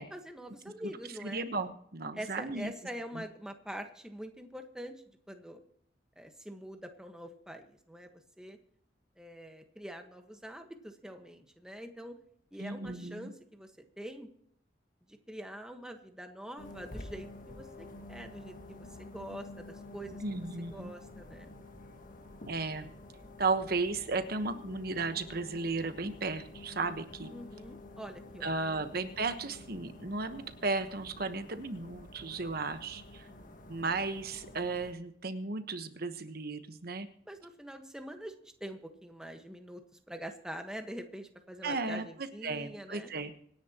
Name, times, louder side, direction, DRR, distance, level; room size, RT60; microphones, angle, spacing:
voice 1, 0.0-1.4 2.1-5.6 6.2-8.1 8.4-8.6 9.2-12.2 12.5-13.7 14.0-14.3 15.3-21.5 27.3-28.5 33.3-33.8 37.3-43.1, equal, 5° right, 5 dB, 1.4 m, -45 dB
voice 2, 1.2-2.7 3.1-3.2 12.6-13.3 20.2-20.9 22.5-22.9 23.4-27.3 28.4-33.3 33.7-37.1 41.6-43.3, right 3 dB, 55° right, 9 dB, 1.2 m, -35 dB
sound 1, 16.6-34.9, left 2 dB, 45° left, 1.6 m, -49 dB
26.0 x 10.5 x 3.0 m, 0.68 s
head